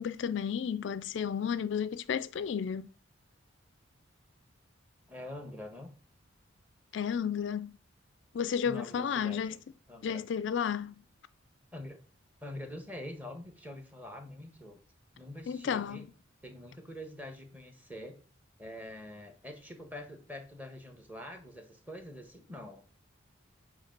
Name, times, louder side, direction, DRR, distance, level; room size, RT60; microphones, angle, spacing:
voice 1, 0.0-2.9 6.9-7.8 8.3-9.6 10.0-11.0 15.5-16.1, left 7 dB, 60° left, 0.3 m, -32 dB
voice 2, 5.1-5.9 8.6-9.6 9.9-10.2 11.7-12.0 12.4-14.8 15.1-16.1 16.4-18.2 18.6-22.8, left 1 dB, 10° right, 1.1 m, -45 dB
8.0 x 3.1 x 5.8 m
head